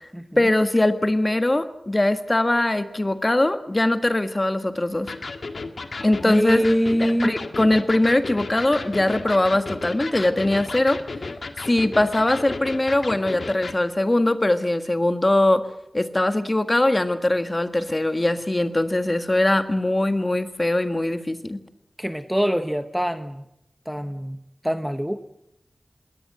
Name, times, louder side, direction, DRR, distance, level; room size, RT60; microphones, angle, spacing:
voice 1, 0.4-5.1 6.0-6.7 7.0-11.0 11.7-15.6 15.9-21.6, left 1 dB, 25° left, 9 dB, 1.6 m, -21 dB
Electric guitar, 5.1-13.8, left 3 dB, 65° left, 1.8 m, -34 dB
voice 2, 6.2-7.3 22.0-23.5 23.9-25.2, equal, 5° right, 9 dB, 0.9 m, -24 dB
21.0 x 18.0 x 7.7 m, 0.81 s
wide cardioid pair, 85°, 0 cm